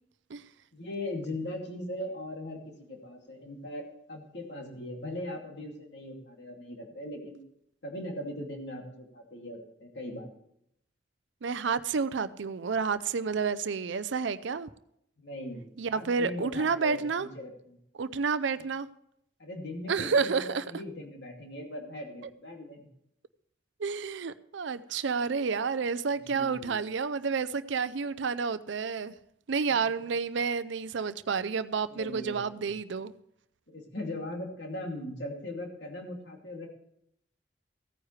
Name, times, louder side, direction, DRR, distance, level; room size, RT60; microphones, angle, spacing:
voice 1, 0.7-3.8 4.1-7.4 7.8-10.3 15.2-17.8 19.4-22.9 26.1-26.8 31.9-32.7 33.7-36.7, left 1 dB, 70° left, 2.5 m, -39 dB
voice 2, 11.4-14.7 15.8-17.3 18.0-18.9 19.9-20.6 23.8-29.1 29.5-33.1, right 5 dB, 75° right, 0.5 m, -30 dB
16.0 x 9.5 x 3.2 m
head